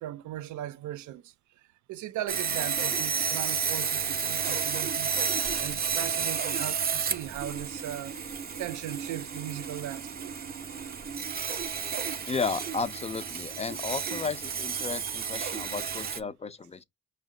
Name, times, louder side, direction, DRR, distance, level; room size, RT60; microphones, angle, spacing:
voice 1, 0.0-1.3 1.9-8.2 8.6-10.3, right 13 dB, 75° right, 0.5 m, -38 dB
Sawing, 2.3-16.2, right 6 dB, 30° right, 0.6 m, -32 dB
voice 2, 12.3-16.8, left 5 dB, 20° left, 0.5 m, -33 dB
5.5 x 2.2 x 3.6 m
cardioid pair, 90°, 30 cm